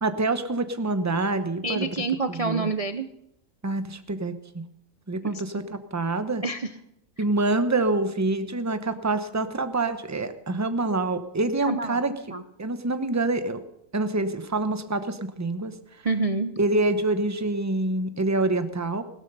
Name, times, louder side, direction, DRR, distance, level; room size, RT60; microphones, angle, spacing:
voice 1, 0.0-1.9 2.3-2.7 3.6-4.6 5.1-6.4 7.2-12.1 12.6-13.6 13.9-15.7 16.6-19.0, right 2 dB, 15° right, 10 dB, 0.6 m, -26 dB
voice 2, 1.6-3.1 5.2-5.4 6.4-6.7 11.6-12.0 12.3-12.4 16.0-16.5, right 3 dB, 60° right, 9 dB, 0.3 m, -27 dB
17.0 x 12.5 x 5.4 m, 0.80 s
omnidirectional pair, 1.6 m